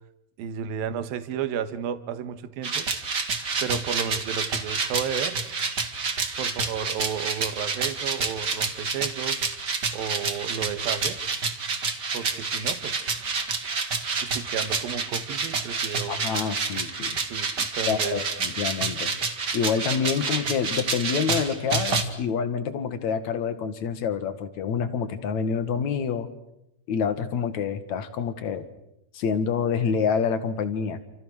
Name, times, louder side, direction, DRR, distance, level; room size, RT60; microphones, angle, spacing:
voice 1, 0.4-2.9 3.6-5.4 6.4-9.4 9.9-11.2 12.1-13.2 14.2-16.2 17.2-18.2, right 8 dB, 65° right, 11 dB, 3.0 m, -32 dB
sound 1, 2.6-22.0, right 4 dB, 35° right, 2.1 m, -29 dB
voice 2, 16.1-17.2 17.9-26.3 26.9-28.6 29.1-31.0, left 6 dB, 55° left, 10 dB, 2.6 m, -27 dB
29.0 x 28.5 x 6.5 m, 0.83 s
omnidirectional pair, 4.7 m